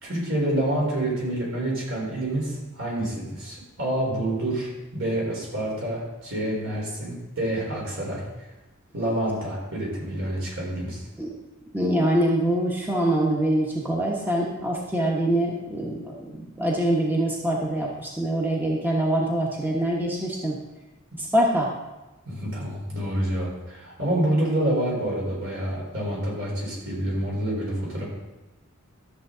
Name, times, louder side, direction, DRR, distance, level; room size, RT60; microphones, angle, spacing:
voice 1, 0.0-8.2 8.9-11.0 22.3-28.0, right 1 dB, 65° right, -3 dB, 4.1 m, -27 dB
voice 2, 11.7-20.5 21.2-21.7, right 1 dB, 10° right, -2 dB, 1.1 m, -24 dB
12.5 x 7.2 x 3.9 m, 1.1 s
head